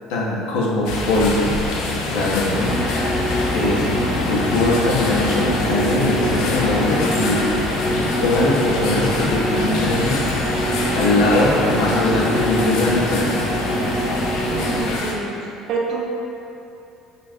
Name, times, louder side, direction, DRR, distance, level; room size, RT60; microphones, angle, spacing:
voice 1, 0.1-1.7 2.1-2.7 3.5-7.5 8.2-10.2 10.9-13.5, left 2 dB, 90° left, -4 dB, 0.8 m, -21 dB
sound 1, 0.8-15.0, left 1 dB, 90° right, 1.3 m, -34 dB
sound 2, 0.9-15.1, left 3 dB, 65° left, 0.4 m, -27 dB
sound 3, 2.5-14.9, equal, 10° left, 0.5 m, -24 dB
voice 2, 14.5-15.4 15.7-16.1, right 4 dB, 45° right, -2 dB, 0.5 m, -26 dB
5.3 x 2.4 x 2.7 m, 2.8 s
cardioid pair, 170°, 0 cm